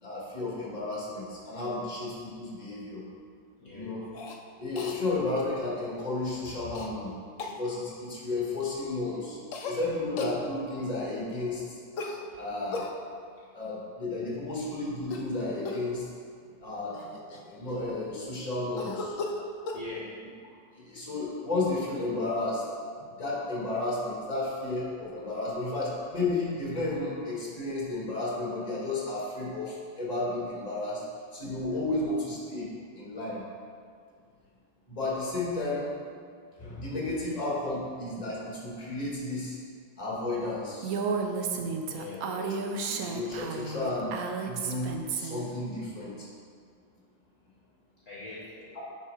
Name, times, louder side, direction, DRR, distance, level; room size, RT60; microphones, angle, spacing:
voice 1, 0.0-3.0 3.7-4.0 4.6-7.1 7.4-9.4 9.6-11.8 12.3-12.8 13.5-16.1 16.6-17.0 17.5-19.2 20.8-22.6 23.1-31.0 31.3-32.7 33.0-33.4 34.9-35.9 36.6-39.6 40.0-41.0 42.2-42.6 42.9-44.1 44.4-46.3 48.7-48.8, left 2 dB, 20° left, -5 dB, 1.9 m, -32 dB
Cough, 4.1-4.4 4.8-5.0 6.8-6.9 7.4-7.6 9.5-9.8 10.2-10.4 12.0-12.9 15.0-15.3 15.7-15.9 16.6-16.7 16.9-18.0 18.8-19.9, left 3 dB, 70° left, 0.7 m, -37 dB
voice 2, 19.7-20.1 23.1-23.2 41.5-42.3 48.1-48.8, left 3 dB, 50° left, -7 dB, 1.5 m, -42 dB
Female speech woman speaking, 40.8-45.5, right 5 dB, 75° right, 0.8 m, -32 dB
9.9 x 4.5 x 4.9 m, 2.2 s
omnidirectional pair, 2.2 m